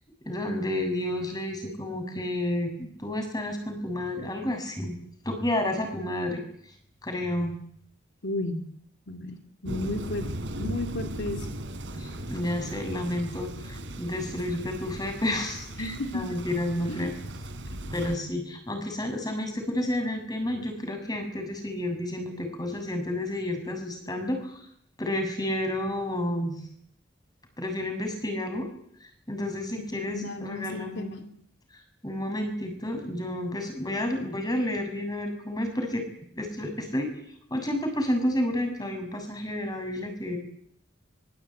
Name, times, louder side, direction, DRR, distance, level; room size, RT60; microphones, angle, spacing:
voice 1, 0.2-4.9 5.3-6.4 7.0-7.6 11.9-17.1 17.9-24.6 25.0-26.6 27.6-28.7 29.3-31.2 32.0-36.0 36.4-37.1 37.5-40.4, left 1 dB, 20° left, 5 dB, 7.1 m, -30 dB
voice 2, 8.2-8.7 9.1-9.4 9.6-10.3 10.6-11.5 15.8-16.2 16.9-17.1 17.8-17.9 29.7-31.3, left 1 dB, 65° left, 5 dB, 2.7 m, -33 dB
Thunder, 9.6-18.2, right 1 dB, 75° right, 3.7 m, -37 dB
24.5 x 23.5 x 9.2 m, 0.66 s
head